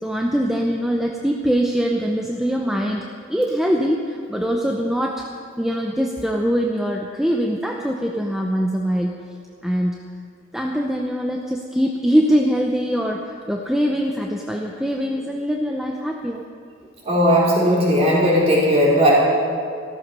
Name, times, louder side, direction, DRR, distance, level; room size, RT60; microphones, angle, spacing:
voice 1, 0.0-5.3 5.6-9.2 9.6-9.9 10.5-16.4, equal, ahead, 0 dB, 0.6 m, -22 dB
voice 2, 17.1-19.1, equal, 30° right, -5 dB, 4.0 m, -17 dB
14.5 x 14.0 x 5.4 m, 2.4 s
head